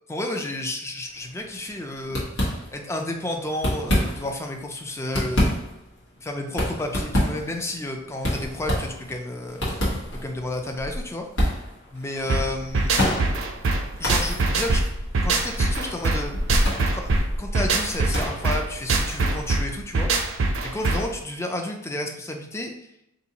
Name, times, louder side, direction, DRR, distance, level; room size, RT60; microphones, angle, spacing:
voice 1, 0.1-2.2 2.7-5.5 6.2-9.6 10.2-11.3 11.9-12.9 14.0-14.8 15.2-16.3 16.9-17.1 17.4-22.7, left 1 dB, 15° left, 3 dB, 0.3 m, -31 dB
sound 1, 1.1-1.4 1.7-1.8 2.1-3.0 3.5-4.4 4.9-19.8, equal, 75° left, 1.1 m, -28 dB
sound 2, 12.3-21.2, right 3 dB, 70° right, 0.5 m, -24 dB
3.9 x 2.6 x 2.8 m, 0.82 s
head